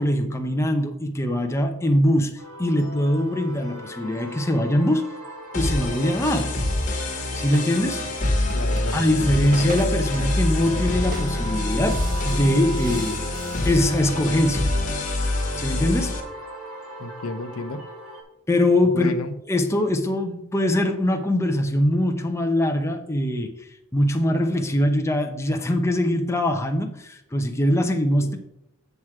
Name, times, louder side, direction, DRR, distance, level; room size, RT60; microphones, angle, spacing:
voice 1, 0.0-2.3 2.6-5.1 5.5-6.6 7.4-8.0 8.9-13.2 13.6-14.7 15.6-16.2 18.5-19.1 19.5-23.5 23.9-28.4, left 1 dB, 15° left, 0.7 m, -22 dB
sound 1, 2.4-18.2, equal, 80° right, 2.5 m, -39 dB
sound 2, 5.5-16.2, left 1 dB, 35° left, 1.5 m, -26 dB
sound 3, 7.0-14.4, right 3 dB, 40° right, 0.6 m, -41 dB
voice 2, 8.5-9.0 17.0-17.9 18.9-19.4 28.2-28.4, left 2 dB, 70° left, 0.8 m, -32 dB
8.1 x 6.0 x 4.8 m
head